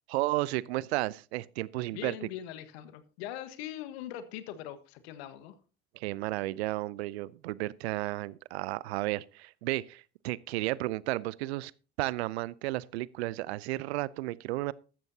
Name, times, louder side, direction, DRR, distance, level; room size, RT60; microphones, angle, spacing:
voice 1, 0.1-2.2 5.9-11.7 12.0-14.7, right 18 dB, 75° right, 0.6 m, -33 dB
voice 2, 1.9-5.5, left 11 dB, 75° left, 1.5 m, -41 dB
14.5 x 12.0 x 2.8 m
hypercardioid pair, 65°, 32 cm